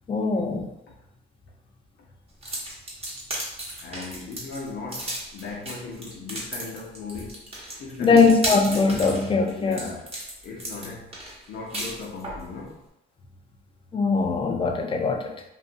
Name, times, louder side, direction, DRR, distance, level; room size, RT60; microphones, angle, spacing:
voice 1, 0.1-0.7 8.0-9.9 13.9-15.3, left 4 dB, 25° left, 3 dB, 0.4 m, -21 dB
sound 1, 2.4-12.5, right 1 dB, 30° right, 1.0 m, -34 dB
voice 2, 3.8-7.4 7.8-8.3 9.6-10.1 10.4-11.1 11.5-12.8, left 4 dB, 65° left, -2 dB, 0.8 m, -37 dB
2.6 x 2.4 x 2.5 m, 0.86 s
cardioid pair, 90°, 20 cm